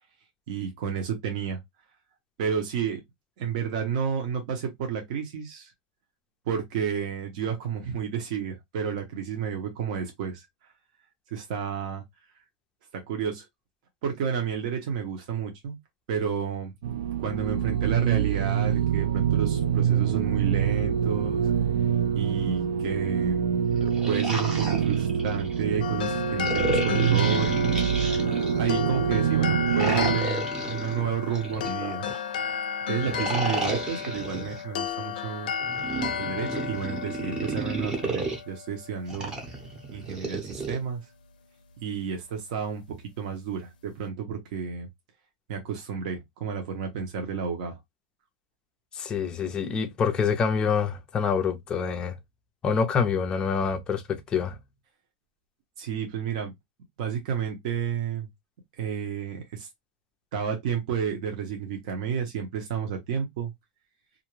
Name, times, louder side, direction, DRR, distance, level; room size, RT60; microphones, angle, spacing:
voice 1, 0.5-1.6 2.4-3.0 3.4-5.7 6.5-10.5 11.3-12.0 12.9-13.5 14.0-15.8 16.1-16.7 17.2-21.4 22.1-23.4 24.1-27.6 28.6-32.0 32.9-35.5 36.2-39.3 39.9-41.0 41.8-42.8 43.2-44.9 45.5-47.8 55.8-56.5 57.0-58.3 58.8-59.7 60.3-63.5, right 7 dB, 55° right, 0.8 m, -31 dB
sound 1, 16.8-30.2, right 8 dB, 80° right, 0.4 m, -25 dB
sound 2, 23.7-25.6 26.4-28.8 29.7-32.2 33.0-34.6 35.6-38.4 39.1-40.8, right 2 dB, 15° right, 0.8 m, -33 dB
sound 3, 25.8-39.0, left 7 dB, 85° left, 0.5 m, -33 dB
voice 2, 48.9-52.2 52.6-54.6, left 6 dB, 20° left, 0.4 m, -26 dB
2.5 x 2.2 x 3.0 m
supercardioid pair, 160°, 5 cm